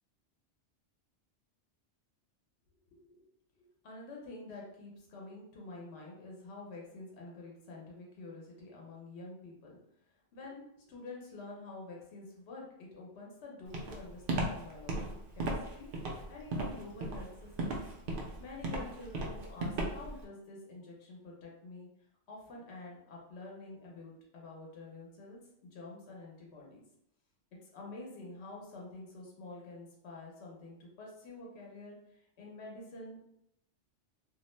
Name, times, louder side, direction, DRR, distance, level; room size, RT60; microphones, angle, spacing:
voice 1, 3.6-9.8 10.3-17.9 18.4-21.9 22.3-26.8 27.6-33.3, left 2 dB, 70° left, -2 dB, 1.0 m, -48 dB
Walk footsteps, 13.7-20.2, right 2 dB, 60° right, 0.6 m, -35 dB
2.5 x 2.0 x 3.0 m, 0.77 s
omnidirectional pair, 1.2 m